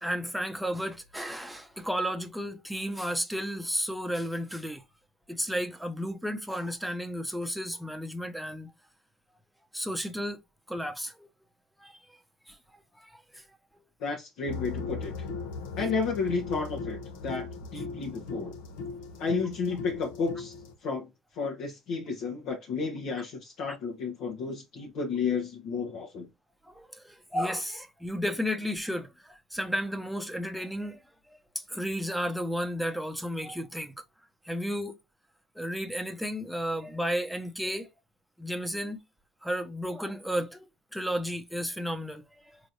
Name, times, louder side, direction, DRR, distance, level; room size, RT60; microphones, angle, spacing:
voice 1, 0.0-4.8 5.3-8.7 9.7-10.4 10.7-11.3 11.8-12.0 12.5-12.6 12.9-13.4 26.7-31.0 31.3-34.0 34.4-35.0 35.6-37.9 38.4-39.0 39.4-42.6, equal, ahead, 0.7 m, -33 dB
voice 2, 14.0-15.3 15.8-18.5 19.2-20.5 20.8-26.3, left 4 dB, 70° left, 1.0 m, -32 dB
sound 1, 14.5-20.7, left 4 dB, 90° left, 0.7 m, -38 dB
4.3 x 3.1 x 2.5 m
supercardioid pair, 105°, 0 cm